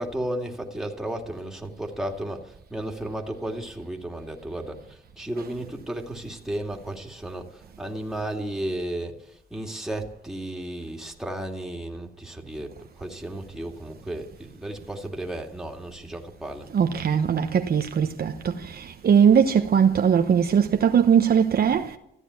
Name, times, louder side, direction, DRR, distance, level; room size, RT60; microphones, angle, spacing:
voice 1, 0.0-9.2 9.5-16.7, right 1 dB, ahead, 2.7 m, -34 dB
voice 2, 16.7-22.0, right 7 dB, 50° right, 1.1 m, -20 dB
15.0 x 10.0 x 9.7 m
cardioid pair, 90°, 20 cm